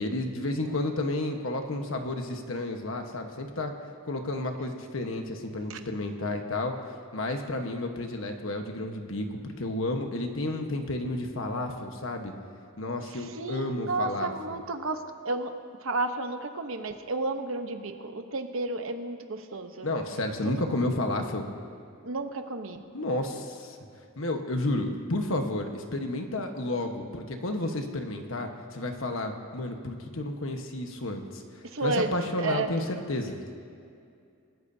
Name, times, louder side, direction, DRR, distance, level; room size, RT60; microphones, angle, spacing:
voice 1, 0.0-3.7 4.0-6.7 7.1-12.3 12.8-14.6 19.8-21.5 22.9-23.8 24.2-31.4 31.8-33.4, left 2 dB, 65° left, 4 dB, 1.3 m, -31 dB
voice 2, 13.1-15.5 15.8-19.9 20.4-20.6 22.0-22.8 31.6-32.1 32.4-32.7, right 2 dB, 65° right, 7 dB, 1.0 m, -32 dB
27.5 x 14.0 x 2.8 m, 2.4 s
head